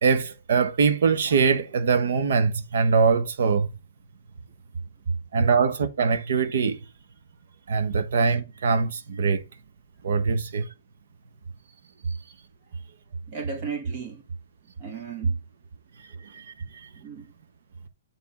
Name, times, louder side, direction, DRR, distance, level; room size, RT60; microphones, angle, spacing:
voice 1, 0.0-3.7 5.3-6.8 7.7-9.4 10.0-10.7 16.2-16.9, right 5 dB, 60° right, 1.1 m, -23 dB
voice 2, 13.3-14.2 14.8-15.4 17.0-17.3, right 4 dB, 30° right, 1.4 m, -30 dB
9.5 x 3.7 x 4.2 m
hypercardioid pair, 170°, 0 cm